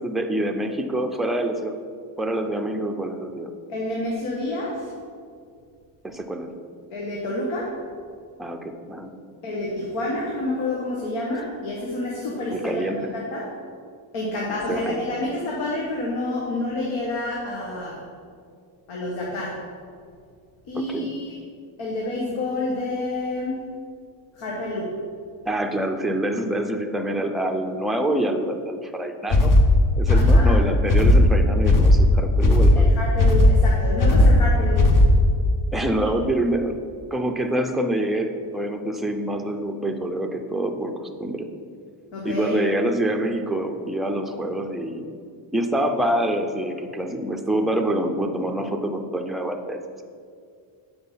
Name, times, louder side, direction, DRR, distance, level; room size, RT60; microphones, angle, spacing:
voice 1, 0.0-1.7 2.2-3.5 6.0-6.5 8.4-9.1 12.5-13.1 14.7-15.0 20.8-21.1 25.4-29.5 30.0-33.0 35.7-36.8 37.1-40.9 41.2-41.5 42.2-45.2 45.5-49.8, right 1 dB, ahead, 4 dB, 0.4 m, -26 dB
voice 2, 3.7-4.9 6.9-7.7 9.4-12.8 13.1-13.5 14.1-18.0 18.9-19.6 20.7-21.3 21.8-23.6 24.4-24.9 30.1-30.6 32.7-34.8 35.9-36.1 42.1-42.6, left 2 dB, 85° left, -3 dB, 1.4 m, -28 dB
sound 1, 29.3-35.4, left 1 dB, 40° left, 0.8 m, -16 dB
8.2 x 4.4 x 5.5 m, 2.2 s
cardioid pair, 120°, 48 cm